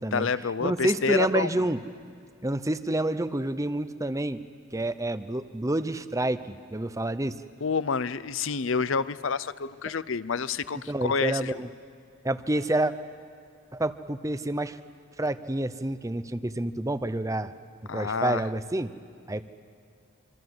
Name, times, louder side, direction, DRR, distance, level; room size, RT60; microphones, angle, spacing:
voice 1, 0.1-1.6 7.6-11.6 17.9-18.4, left 5 dB, 65° left, 16 dB, 0.7 m, -28 dB
voice 2, 0.6-1.8 2.4-4.4 4.7-7.3 10.9-11.7 12.2-12.9 13.7-14.8 15.2-17.5 17.9-18.9 19.3-19.4, right 1 dB, 15° right, 12 dB, 0.7 m, -28 dB
26.0 x 25.5 x 7.9 m, 2.2 s
head